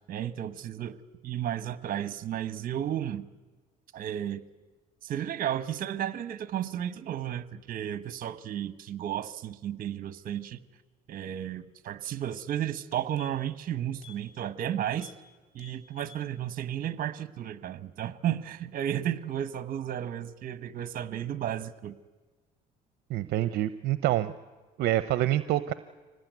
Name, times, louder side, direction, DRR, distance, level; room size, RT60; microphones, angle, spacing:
voice 1, 0.1-1.0 1.2-3.3 3.9-4.4 5.0-10.6 11.1-15.1 15.5-21.9, right 10 dB, 55° right, 14 dB, 1.1 m, -33 dB
sound 1, 12.7-13.6 14.0-14.2 14.5-14.7 14.9-15.2 15.5-16.3 16.6-16.7, left 8 dB, 75° left, 4.1 m, -53 dB
voice 2, 23.1-24.3 24.8-25.7, right 14 dB, 75° right, 13 dB, 0.7 m, -26 dB
25.5 x 18.5 x 9.3 m, 1.3 s
cardioid pair, 110°, 17 cm